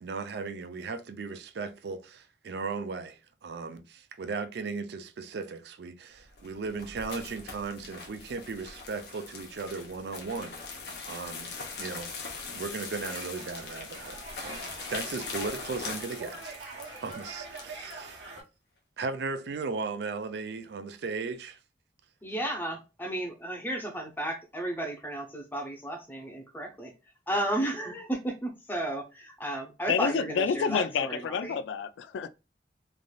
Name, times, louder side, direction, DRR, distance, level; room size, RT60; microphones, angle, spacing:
voice 1, 0.0-10.6 11.1-12.2 12.5-14.6 14.9-16.6 17.0-18.2 19.0-21.6, right 4 dB, 65° right, 0.4 m, -36 dB
sound 1, 6.2-18.0, left 4 dB, 60° left, 0.7 m, -41 dB
sound 2, 13.0-18.4, right 3 dB, 90° right, 1.0 m, -44 dB
voice 2, 22.2-26.9 27.3-31.5, right 1 dB, 10° left, 0.7 m, -33 dB
voice 3, 29.9-32.3, left 6 dB, 85° left, 0.3 m, -29 dB
3.3 x 2.5 x 2.2 m
head